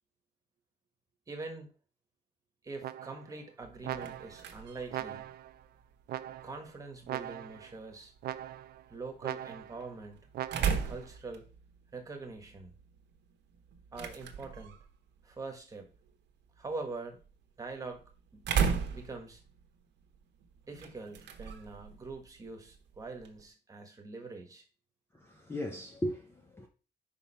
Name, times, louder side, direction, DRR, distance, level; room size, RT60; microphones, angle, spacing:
voice 1, 1.3-1.7 2.6-5.3 6.4-8.1 8.9-10.2 10.6-11.5 11.9-12.8 13.9-14.8 15.2-15.9 16.6-17.2 17.6-18.0 18.3-18.6 18.9-19.4 20.7-24.6, right 3 dB, 20° right, 1.5 m, -44 dB
sound 1, 2.8-3.4 3.8-4.5 4.9-5.6 6.1-6.7 7.1-7.7 8.2-8.8 9.2-9.9 10.3-11.0, right 12 dB, 60° right, 0.4 m, -40 dB
sound 2, 3.6-23.5, right 6 dB, 80° right, 1.1 m, -39 dB
voice 2, 25.1-26.7, equal, 15° left, 0.7 m, -37 dB
5.3 x 4.9 x 5.6 m
cardioid pair, 175°, 18 cm